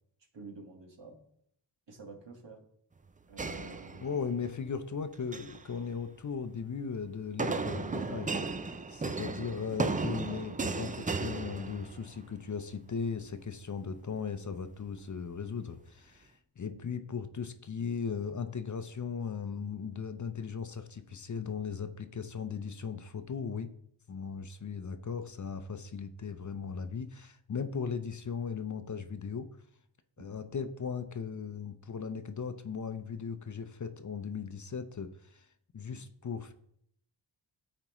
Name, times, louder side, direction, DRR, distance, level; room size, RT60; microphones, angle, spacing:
voice 1, 0.3-1.2 1.9-2.6 3.3-4.3 16.6-16.8 30.2-30.3 35.9-36.0, right 4 dB, 65° right, 1 dB, 1.8 m, -50 dB
sound 1, 3.4-4.5 5.1-5.6 7.4-12.2, right 4 dB, 20° right, 0.4 m, -35 dB
voice 2, 4.0-8.3 8.9-23.7 24.1-29.5 30.2-35.5 35.7-36.5, left 6 dB, 40° left, 10 dB, 0.6 m, -37 dB
13.0 x 4.4 x 3.0 m, 0.71 s
cardioid pair, 65°, 47 cm